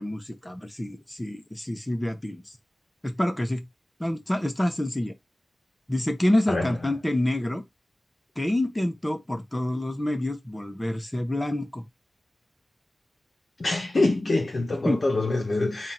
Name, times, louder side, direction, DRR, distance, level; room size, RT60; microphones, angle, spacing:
voice 1, 0.0-2.4 3.0-3.6 4.0-5.1 5.9-7.6 8.4-11.8 14.8-15.0, left 1 dB, 15° left, 0.8 m, -27 dB
voice 2, 13.6-15.9, left 2 dB, 55° left, 0.8 m, -25 dB
3.8 x 2.4 x 4.3 m
wide cardioid pair, 80°, 0 cm